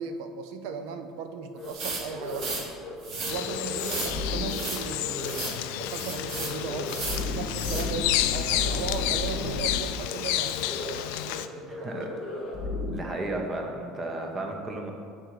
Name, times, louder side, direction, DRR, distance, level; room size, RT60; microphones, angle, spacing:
voice 1, 0.0-2.6 3.2-7.0 7.3-11.9, right 5 dB, 70° right, 7 dB, 0.5 m, -37 dB
sound 1, 1.6-1.7 2.0-2.5 2.8-2.9 3.2-4.6 5.0-5.5 5.7-5.9 6.2-9.7 10.0-10.2 10.5-11.0 11.3-11.4 11.7-12.9, left 3 dB, 25° left, 1.1 m, -34 dB
sound 2, 1.6-2.6 3.0-3.3 3.8-4.1 4.5-4.8 5.2-5.6 5.9-6.5 6.8-7.2 7.6-7.8, right 3 dB, 45° right, 1.4 m, -34 dB
Bird vocalization bird call bird song, 3.3-11.5, left 13 dB, 75° left, 0.3 m, -31 dB
voice 2, 11.7-12.4 12.9-14.9, right 2 dB, 20° right, 2 dB, 0.7 m, -34 dB
8.6 x 3.9 x 4.6 m, 2.4 s
cardioid pair, 165°, 0 cm